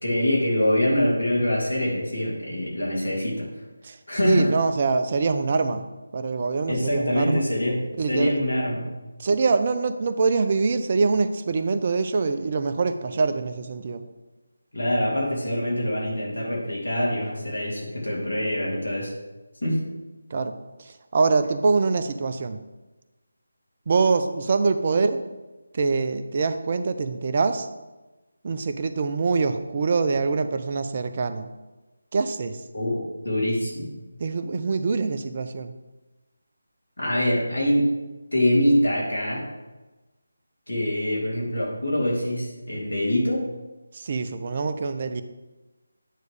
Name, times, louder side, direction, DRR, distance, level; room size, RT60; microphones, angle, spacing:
voice 1, 0.0-3.5 4.1-4.5 6.7-7.8 8.1-8.9 14.7-19.1 19.6-19.8 32.7-33.9 37.0-37.9 38.3-39.4 40.7-43.4, left 1 dB, 85° left, -4 dB, 2.6 m, -24 dB
voice 2, 4.2-5.9 6.1-7.4 8.0-8.4 9.2-14.0 20.3-22.6 23.9-25.2 25.7-27.7 28.4-31.5 32.1-32.6 34.2-35.7 43.9-45.2, right 4 dB, 40° right, 9 dB, 0.6 m, -24 dB
9.2 x 3.2 x 6.5 m, 1.1 s
figure-of-eight pair, 160°, 0 cm